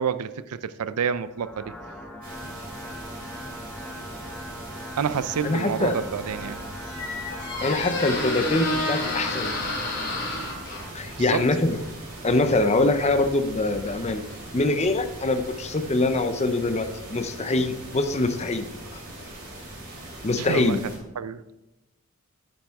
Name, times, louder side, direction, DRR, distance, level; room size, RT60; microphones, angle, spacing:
voice 1, 0.0-1.7 5.0-6.6 11.2-11.5 20.4-21.4, right 7 dB, 90° right, 15 dB, 0.5 m, -28 dB
sound 1, 1.2-9.2, equal, 5° left, 0.9 m, -40 dB
sound 2, 2.2-21.0, right 1 dB, 40° right, 4.0 m, -41 dB
voice 2, 5.4-5.9 7.6-9.5 10.9-11.8 12.2-14.2 14.5-18.7 20.2-20.8, left 2 dB, 30° left, 9 dB, 0.6 m, -24 dB
Squeak, 6.3-14.9, left 2 dB, 55° left, 2.9 m, -32 dB
9.6 x 8.9 x 3.5 m, 0.98 s
head